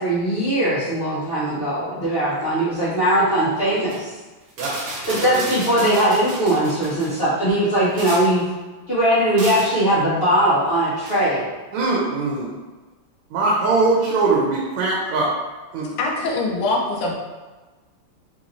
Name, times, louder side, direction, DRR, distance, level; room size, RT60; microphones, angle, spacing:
voice 1, 0.0-4.1 5.1-8.4 8.9-11.4, right 1 dB, 55° left, -12 dB, 0.6 m, -20 dB
sound 1, 3.7-4.0 4.5-7.2 7.7-8.4 9.4-9.8 11.0-11.2, right 1 dB, 55° right, 1.0 m, -33 dB
voice 2, 5.1-5.6 11.7-12.5 13.3-15.3 15.7-16.0, right 3 dB, 85° right, -4 dB, 1.6 m, -21 dB
voice 3, 16.0-17.1, left 2 dB, 80° left, -1 dB, 1.5 m, -23 dB
4.2 x 3.0 x 2.5 m, 1.3 s
omnidirectional pair, 2.4 m